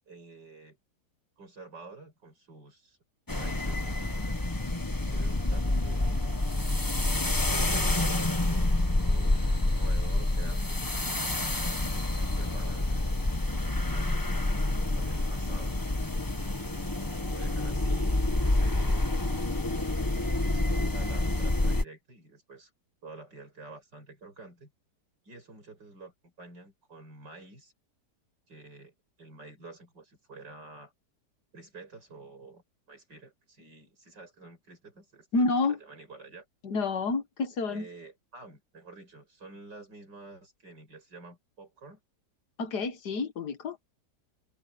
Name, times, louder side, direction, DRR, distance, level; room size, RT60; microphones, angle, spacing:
voice 1, 0.1-0.8 1.4-3.0 3.3-4.4 5.0-6.4 7.4-10.8 11.9-13.1 13.9-15.8 16.3-17.0 17.3-19.0 20.4-22.7 23.0-24.7 25.2-27.7 28.5-30.9 31.5-36.4 37.6-42.0, right 3 dB, 90° right, 8.5 m, -49 dB
sound 1, 3.3-21.8, left 2 dB, 15° left, 1.1 m, -28 dB
voice 2, 35.3-35.8 36.6-37.9 42.6-43.9, left 3 dB, 70° left, 2.0 m, -29 dB
omnidirectional pair, 1.8 m